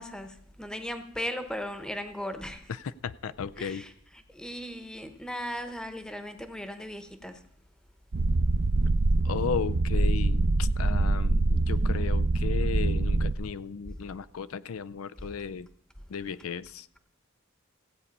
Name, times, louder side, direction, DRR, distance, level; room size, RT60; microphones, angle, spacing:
voice 1, 0.0-2.7 3.6-3.9 4.3-7.4, equal, 5° left, 8 dB, 0.9 m, -37 dB
voice 2, 2.7-3.9 9.2-15.7 16.1-16.9, left 6 dB, 85° left, 16 dB, 0.5 m, -35 dB
sound 1, 8.1-13.3, right 2 dB, 55° right, 0.5 m, -25 dB
15.5 x 8.4 x 5.3 m, 0.72 s
head